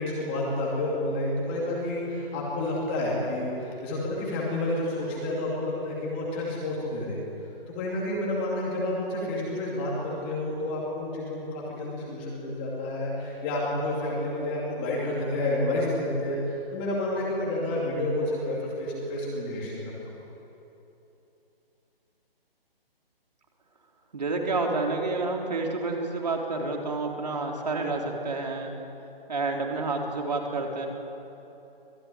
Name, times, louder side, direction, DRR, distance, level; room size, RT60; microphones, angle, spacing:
voice 1, 0.0-7.2 7.7-20.1, left 1 dB, 10° left, -4 dB, 2.5 m, -30 dB
voice 2, 24.1-28.7 29.3-30.9, right 3 dB, 45° right, 1 dB, 3.9 m, -29 dB
26.0 x 20.0 x 10.0 m, 3.0 s
hypercardioid pair, 180°, 30 cm